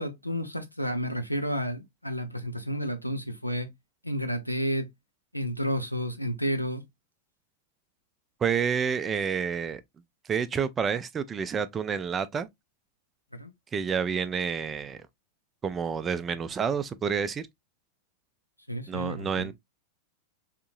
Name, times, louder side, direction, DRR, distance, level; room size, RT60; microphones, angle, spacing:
voice 1, 0.0-3.7 4.0-4.9 5.3-6.8 13.4-13.5 18.7-19.5, equal, 90° left, 0.6 m, -31 dB
voice 2, 8.4-9.8 10.3-12.5 13.7-15.0 15.6-17.4 18.9-19.5, right 6 dB, 20° right, 0.4 m, -29 dB
3.6 x 2.9 x 2.4 m
figure-of-eight pair, 90°, 0 cm